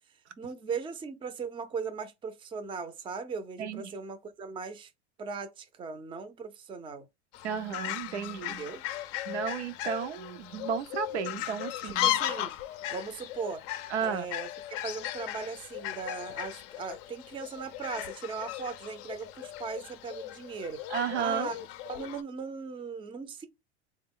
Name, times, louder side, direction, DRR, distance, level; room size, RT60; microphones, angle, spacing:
voice 1, 0.4-4.9 5.2-7.1 8.5-8.8 11.8-12.6 12.9-13.6 14.0-14.5 14.8-20.8 21.1-21.6 21.9-23.5, right 5 dB, 15° right, 0.5 m, -38 dB
voice 2, 3.6-3.9 7.4-8.6 9.3-12.1 13.9-14.3 20.9-21.5, right 7 dB, 80° right, 0.6 m, -33 dB
Fowl, 7.3-22.2, left 14 dB, 45° left, 0.5 m, -36 dB
3.5 x 2.2 x 3.5 m
hypercardioid pair, 95°, 34 cm